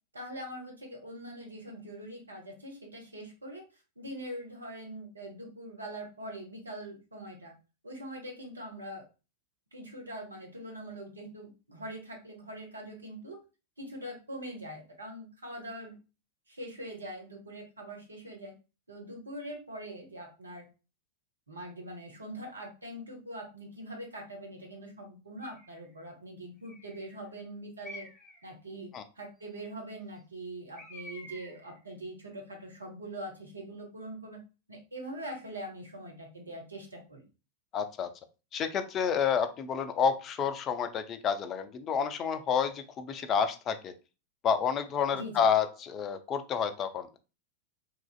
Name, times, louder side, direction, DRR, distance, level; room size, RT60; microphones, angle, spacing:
voice 1, 0.1-3.6 4.0-7.5 7.8-9.1 9.7-13.4 13.8-16.0 16.5-18.5 18.9-20.7 21.5-28.1 28.4-28.9 29.1-34.4 34.7-37.2 45.1-45.4, right 1 dB, 80° right, 1 dB, 0.8 m, -43 dB
Bird, 25.4-25.9 26.6-27.2 27.8-28.4 30.8-31.8, equal, 10° left, 0.8 m, -48 dB
voice 2, 37.7-38.1 38.5-43.9 44.4-47.2, left 7 dB, 30° left, 10 dB, 0.4 m, -29 dB
3.0 x 2.4 x 2.3 m, 0.31 s
figure-of-eight pair, 90°, 0 cm